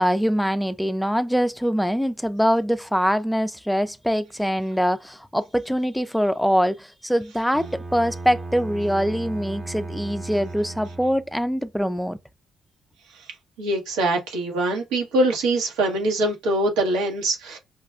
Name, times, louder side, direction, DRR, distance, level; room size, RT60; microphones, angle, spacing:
voice 1, 0.0-12.2, equal, ahead, 0.3 m, -23 dB
Bowed string instrument, 7.5-11.5, right 2 dB, 40° right, 0.8 m, -36 dB
voice 2, 13.6-17.6, right 1 dB, 90° right, 1.1 m, -23 dB
4.9 x 2.2 x 2.3 m
supercardioid pair, 60°, 0 cm